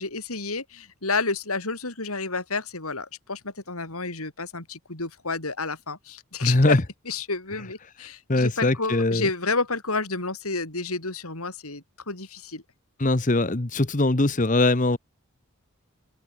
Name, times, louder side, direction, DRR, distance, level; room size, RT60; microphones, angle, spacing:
voice 1, 0.0-6.8 7.1-12.6, left 3 dB, 90° left, 5.7 m, -30 dB
voice 2, 6.4-6.8 8.3-9.3 13.0-15.0, left 2 dB, 35° left, 1.1 m, -21 dB
open air
head